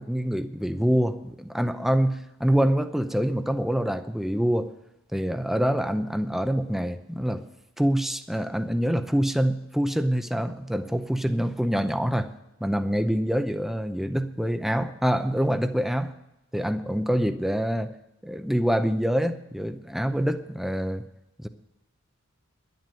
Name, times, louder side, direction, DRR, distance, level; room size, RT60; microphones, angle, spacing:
voice 1, 0.0-4.7 5.1-7.4 7.8-12.3 12.6-16.1 16.5-17.9 18.2-21.0 21.4-21.5, equal, ahead, 0.6 m, -25 dB
11.0 x 10.5 x 7.6 m
head